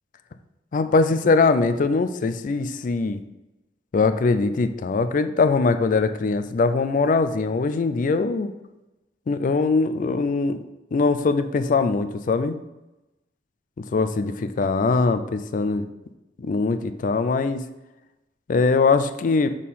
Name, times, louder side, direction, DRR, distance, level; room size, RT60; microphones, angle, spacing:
voice 1, 0.7-3.2 3.9-8.5 9.3-10.6 10.9-12.6 13.9-15.8 16.4-17.6 18.5-19.5, left 4 dB, 45° left, 10 dB, 0.3 m, -21 dB
6.5 x 3.7 x 4.1 m, 1.0 s
head